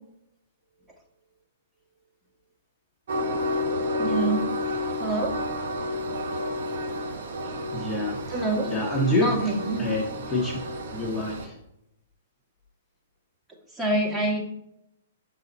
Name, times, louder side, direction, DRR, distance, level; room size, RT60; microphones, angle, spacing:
Train, 3.1-11.5, left 1 dB, 60° right, 1.0 m, -30 dB
voice 1, 4.0-4.5 5.0-5.3 8.3-8.7 9.2-9.8 13.8-14.4, right 2 dB, 10° right, -3 dB, 1.6 m, -26 dB
voice 2, 7.4-10.6 10.9-11.6, left 1 dB, 15° left, -3 dB, 1.2 m, -28 dB
6.7 x 3.9 x 4.2 m, 0.83 s
figure-of-eight pair, 115°, 0 cm